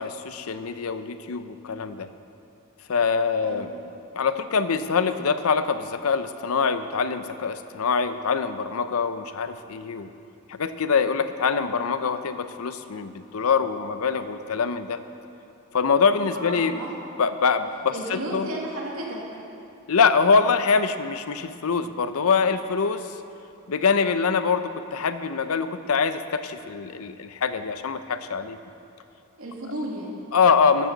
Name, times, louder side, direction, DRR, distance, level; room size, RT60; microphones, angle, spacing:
voice 1, 0.0-2.1 2.9-3.7 4.1-10.1 10.5-15.0 15.7-16.8 17.2-18.5 19.9-23.1 23.7-28.6 30.3-30.9, left 5 dB, 75° left, 11 dB, 0.6 m, -24 dB
voice 2, 16.3-16.9 17.9-19.4 29.4-30.2, right 1 dB, 70° right, -2 dB, 2.3 m, -33 dB
14.0 x 12.5 x 4.0 m, 2.7 s
head